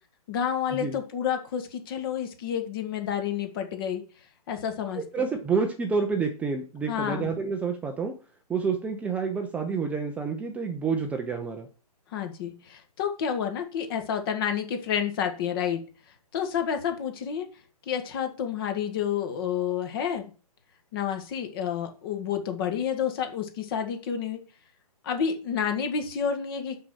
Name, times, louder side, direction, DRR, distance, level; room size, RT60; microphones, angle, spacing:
voice 1, 0.3-4.0 4.5-5.3 6.9-7.3 12.1-15.8 16.3-17.5 17.9-20.3 20.9-24.4 25.0-26.8, left 8 dB, 35° left, 6 dB, 1.7 m, -29 dB
voice 2, 4.9-8.1 8.5-11.7, right 5 dB, 5° right, 3 dB, 0.6 m, -28 dB
5.9 x 5.7 x 6.4 m, 0.36 s
figure-of-eight pair, 135°, 20 cm